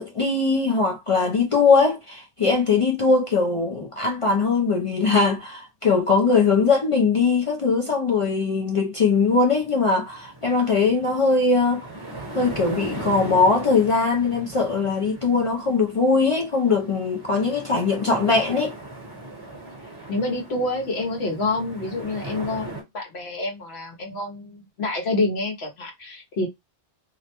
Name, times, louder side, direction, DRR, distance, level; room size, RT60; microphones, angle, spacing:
voice 1, 0.0-11.9 12.4-18.7, left 4 dB, 50° left, 0.4 m, -21 dB
sound 1, 8.9-22.8, right 2 dB, 25° right, 0.9 m, -39 dB
voice 2, 20.1-26.5, left 2 dB, 75° left, 1.0 m, -27 dB
2.4 x 2.1 x 2.8 m
omnidirectional pair, 1.1 m